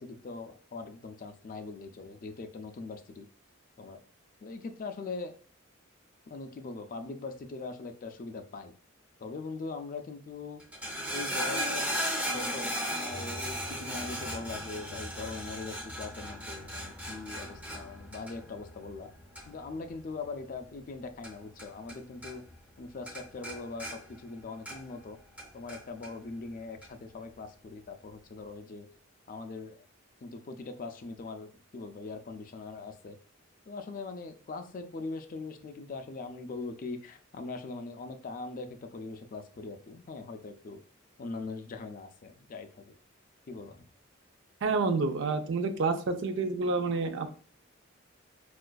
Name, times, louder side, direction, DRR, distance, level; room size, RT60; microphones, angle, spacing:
voice 1, 0.0-3.3 3.8-4.0 4.4-5.3 6.3-8.7 9.2-10.6 11.1-11.9 12.3-19.1 19.5-22.4 22.8-25.2 25.5-28.9 29.3-29.8 30.2-33.2 33.7-40.8 41.2-42.9 43.5-43.8, left 3 dB, 40° left, 7 dB, 0.3 m, -41 dB
sound 1, 10.6-22.0 22.2-22.8 23.1-25.0 25.4-26.1 26.8-26.9, equal, 5° right, 0.5 m, -37 dB
voice 2, 44.6-47.3, right 3 dB, 60° right, 8 dB, 0.4 m, -28 dB
4.6 x 2.4 x 2.2 m, 0.42 s
head